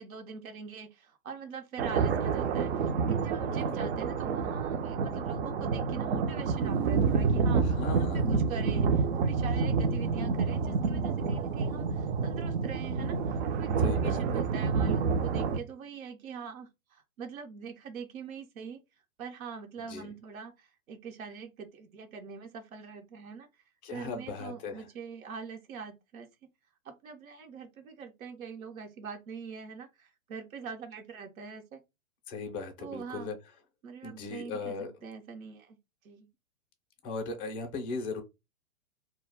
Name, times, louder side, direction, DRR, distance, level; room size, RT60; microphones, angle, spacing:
voice 1, 0.0-18.8 19.2-23.5 23.9-26.3 26.8-31.8 32.8-33.3 33.8-35.8 36.0-36.3, right 6 dB, 75° right, 0.8 m, -43 dB
sound 1, 1.8-15.6, right 5 dB, 55° right, 0.5 m, -28 dB
voice 2, 3.5-3.8 7.6-8.3 13.8-14.4 19.9-20.1 23.8-24.8 32.3-33.4 34.0-34.9 37.0-38.2, left 4 dB, 15° left, 0.4 m, -38 dB
2.2 x 2.1 x 3.2 m
hypercardioid pair, 120°, 42 cm